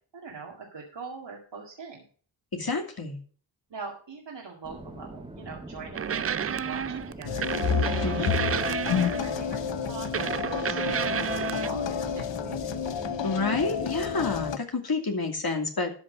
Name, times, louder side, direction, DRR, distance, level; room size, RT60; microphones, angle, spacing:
voice 1, 0.1-2.0 3.7-7.4 7.8-10.3 10.6-12.8, right 4 dB, 70° right, -2 dB, 2.2 m, -42 dB
voice 2, 2.5-3.2 8.0-8.3 13.2-15.9, left 4 dB, 55° left, 3 dB, 2.5 m, -29 dB
sound 1, 4.6-14.4, right 1 dB, 10° right, 2.0 m, -43 dB
sound 2, 5.9-9.4 10.1-11.7, right 7 dB, 35° right, 0.4 m, -30 dB
sound 3, 7.2-14.6, left 6 dB, 75° left, 0.8 m, -30 dB
12.5 x 5.9 x 5.2 m, 0.43 s
cardioid pair, 50°, 44 cm